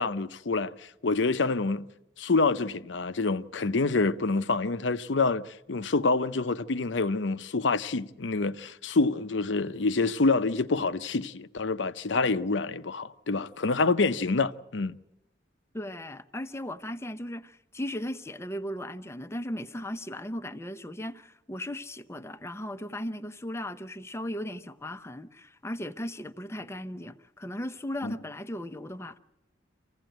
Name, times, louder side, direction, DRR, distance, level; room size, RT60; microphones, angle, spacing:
voice 1, 0.0-1.9 2.2-14.9 28.0-28.1, left 3 dB, 85° left, 0.8 m, -27 dB
voice 2, 15.7-29.2, left 1 dB, 15° left, 0.7 m, -37 dB
26.5 x 16.0 x 9.1 m
head